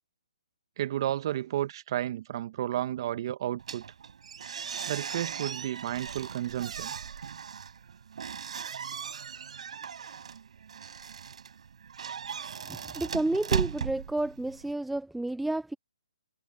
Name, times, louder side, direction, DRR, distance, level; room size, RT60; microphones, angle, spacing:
voice 1, 0.8-3.8 4.9-6.9, right 12 dB, 40° right, 1.4 m, -32 dB
sound 1, 3.6-14.7, right 7 dB, 65° right, 6.3 m, -37 dB
voice 2, 12.7-15.7, right 2 dB, ahead, 0.4 m, -31 dB
hypercardioid pair, 155°, 4 cm